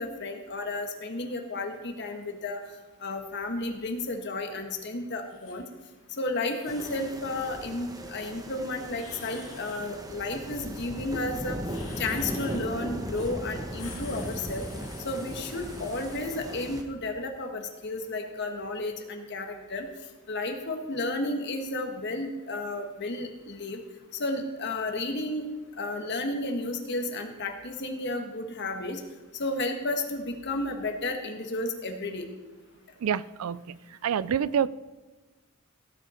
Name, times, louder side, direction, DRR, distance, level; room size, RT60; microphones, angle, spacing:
voice 1, 0.0-2.6 3.0-5.7 6.2-11.6 12.0-14.7 15.0-19.9 20.3-23.8 24.1-25.5 25.8-29.0 29.3-32.3, left 2 dB, 50° left, 4 dB, 1.4 m, -32 dB
sound 1, 5.3-5.6 6.2-7.2 8.9-10.0 11.6-12.7 13.1-13.4 13.6-16.2, left 5 dB, 70° left, 2.4 m, -48 dB
sound 2, 6.7-16.8, right 1 dB, 15° right, 1.0 m, -38 dB
voice 2, 33.0-33.8 34.0-34.7, right 8 dB, 80° right, 19 dB, 0.4 m, -27 dB
17.0 x 7.5 x 4.3 m, 1.3 s
head